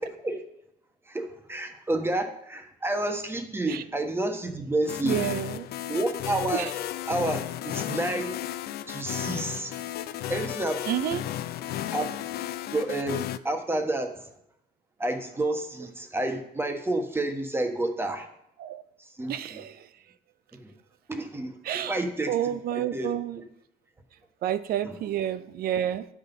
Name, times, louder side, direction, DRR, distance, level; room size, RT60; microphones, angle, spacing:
voice 1, 0.1-0.4 1.1-5.3 5.9-6.7 7.1-8.3 8.9-9.8 10.3-10.9 11.9-12.2 12.7-14.2 15.0-18.3 19.2-19.6 20.5-20.7 21.1-21.5 21.9-23.5 24.8-25.0, right 1 dB, 15° right, 5 dB, 1.3 m, -30 dB
sound 1, 4.8-13.4, left 12 dB, 70° left, 0.5 m, -34 dB
voice 2, 5.0-5.7 6.5-6.7 7.9-8.0 10.9-11.2 18.6-18.8 19.3-19.9 21.6-22.0 22.3-23.4 24.4-26.1, right 11 dB, 65° right, 13 dB, 0.6 m, -29 dB
10.5 x 6.1 x 5.4 m, 0.79 s
cardioid pair, 110°, 17 cm